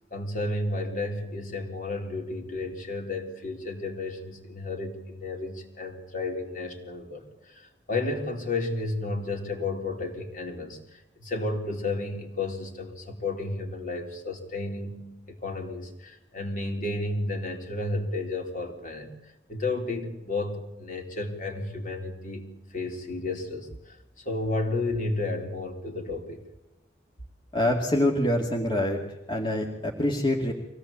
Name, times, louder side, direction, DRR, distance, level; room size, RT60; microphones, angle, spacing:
voice 1, 0.1-15.0 15.3-19.2 19.5-26.4, left 2 dB, 50° left, 2 dB, 3.8 m, -32 dB
voice 2, 27.5-29.0 29.3-30.5, left 1 dB, 30° left, 0 dB, 2.2 m, -25 dB
24.5 x 17.5 x 8.6 m, 0.96 s
head